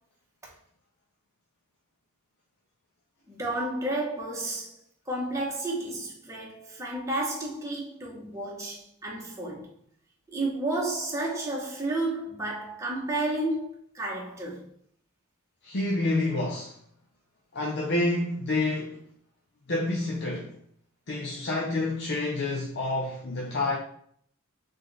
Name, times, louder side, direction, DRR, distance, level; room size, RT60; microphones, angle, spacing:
voice 1, 3.3-4.8 5.1-9.7 10.3-14.7, right 2 dB, 15° right, 1.1 m, -31 dB
voice 2, 15.6-16.8 17.5-19.0 19.7-20.5 21.1-23.8, left 2 dB, 55° left, 0.7 m, -28 dB
3.7 x 3.5 x 3.9 m
head